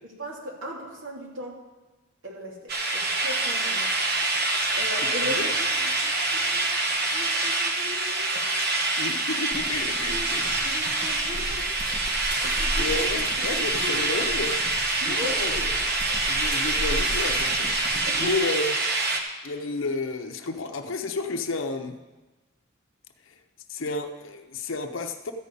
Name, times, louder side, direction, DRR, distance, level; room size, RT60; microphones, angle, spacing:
voice 1, 0.0-1.6 2.2-3.9 4.8-6.8 7.1-8.5 10.1-10.3 10.7-11.7 12.4-13.1 13.5-14.0 15.0-15.7 18.1-18.5, left 1 dB, 75° right, -2 dB, 2.7 m, -38 dB
sound 1, 2.7-19.2, right 2 dB, 50° right, 1.2 m, -26 dB
voice 2, 9.0-10.7 12.8-14.6 15.1-15.5 16.3-18.7 19.4-22.0 23.3-23.4 23.7-25.3, left 3 dB, 75° left, 6 dB, 0.7 m, -31 dB
sound 2, 9.5-18.4, equal, 25° right, 1.3 m, -36 dB
13.5 x 5.3 x 8.3 m, 1.2 s
head